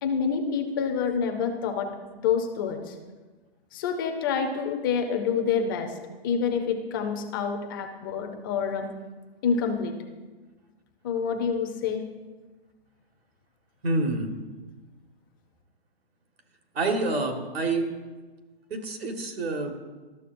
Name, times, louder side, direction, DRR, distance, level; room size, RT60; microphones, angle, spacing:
voice 1, 0.0-1.9 2.2-2.9 3.7-6.0 6.2-8.9 9.4-10.0 11.0-12.0, left 6 dB, 20° left, 5 dB, 0.5 m, -27 dB
voice 2, 13.8-14.3 16.7-17.9 18.7-19.8, right 2 dB, 75° right, 4 dB, 1.6 m, -27 dB
12.5 x 6.7 x 2.6 m, 1.3 s
hypercardioid pair, 155°, 30 cm